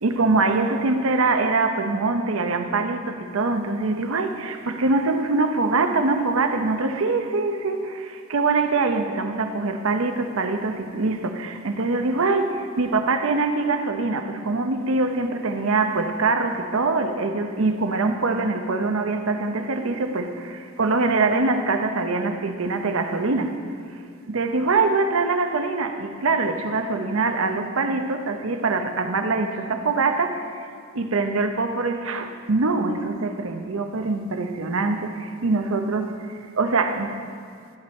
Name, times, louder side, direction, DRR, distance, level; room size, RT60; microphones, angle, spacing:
voice 1, 0.0-23.6 24.3-30.7 30.9-37.1, right 3 dB, 75° right, 6 dB, 0.7 m, -23 dB
13.5 x 8.8 x 4.3 m, 2.2 s
head